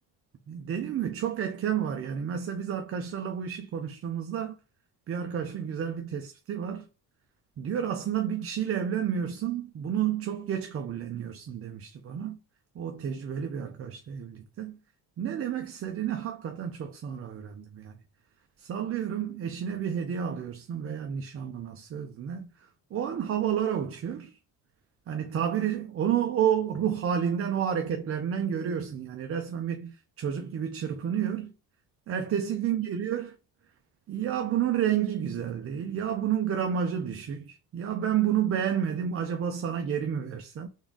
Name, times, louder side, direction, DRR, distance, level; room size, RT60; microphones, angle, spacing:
voice 1, 0.5-4.6 5.1-6.9 7.6-12.4 12.7-14.8 15.2-18.0 18.6-24.4 25.1-31.5 32.1-33.3 34.1-40.7, right 9 dB, 40° right, 0.5 m, -30 dB
3.7 x 3.6 x 3.8 m
cardioid pair, 140°, 37 cm